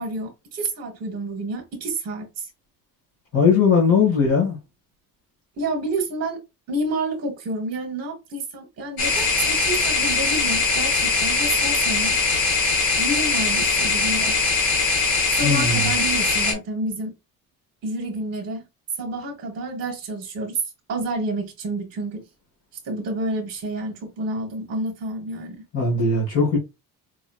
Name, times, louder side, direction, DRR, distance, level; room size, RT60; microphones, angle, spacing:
voice 1, 0.0-2.5 5.6-6.4 6.7-12.2 13.0-14.4 15.3-17.1 17.8-18.6 19.0-20.6 20.9-22.2 22.8-25.7, right 2 dB, 40° right, 1.1 m, -29 dB
voice 2, 3.3-4.6 15.4-15.9 25.7-26.6, left 4 dB, 35° left, 1.6 m, -19 dB
sound 1, 9.0-16.5, left 3 dB, 80° left, 1.7 m, -21 dB
4.7 x 3.0 x 2.3 m
cardioid pair, 165°, 36 cm